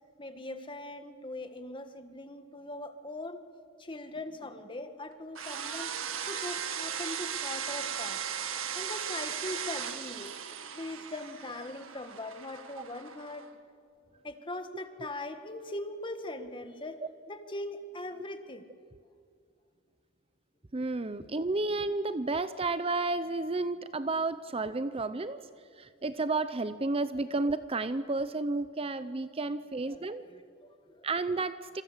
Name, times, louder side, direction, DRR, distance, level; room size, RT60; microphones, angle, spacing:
voice 1, 0.2-3.4 3.8-5.9 6.3-8.2 8.7-10.3 10.7-13.6 14.2-17.0 17.3-18.6 20.9-21.4 25.7-25.8 29.9-31.1, left 2 dB, 25° left, 8 dB, 1.8 m, -41 dB
sound 1, 5.3-13.5, right 8 dB, 70° right, 1.9 m, -37 dB
voice 2, 20.7-25.5 25.8-30.2 31.0-31.8, right 3 dB, 25° right, 13 dB, 0.6 m, -31 dB
28.0 x 26.5 x 8.1 m, 2.3 s
head